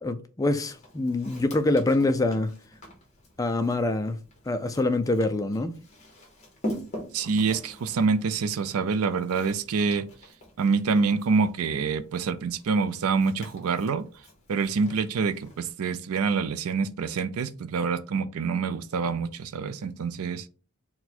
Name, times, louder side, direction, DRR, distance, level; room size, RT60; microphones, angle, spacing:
voice 1, 0.0-2.5 3.4-4.2 4.5-5.7, left 2 dB, 15° left, 0.3 m, -25 dB
Walk footsteps, 0.7-15.7, equal, 30° left, 1.2 m, -44 dB
voice 2, 7.1-10.1 10.6-14.1 14.5-20.5, right 5 dB, 75° right, 0.4 m, -26 dB
4.3 x 2.2 x 4.2 m
head